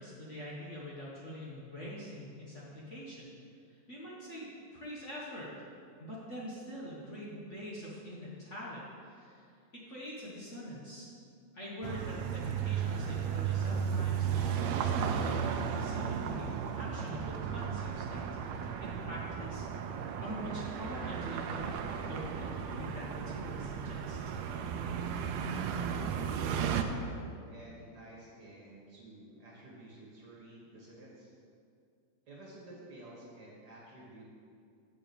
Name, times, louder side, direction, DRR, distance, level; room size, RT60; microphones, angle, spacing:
voice 1, 0.0-3.3 3.7-4.5 4.7-5.5 6.0-9.5 9.7-11.1 11.5-19.9 20.2-21.8 22.1-24.2, equal, 80° left, -6 dB, 0.6 m, -44 dB
sound 1, 11.8-26.8, right 7 dB, 80° right, 1.6 m, -34 dB
voice 2, 26.2-31.3 32.3-34.3, right 1 dB, 45° right, -4 dB, 1.6 m, -51 dB
7.3 x 5.5 x 6.9 m, 2.4 s
omnidirectional pair, 3.3 m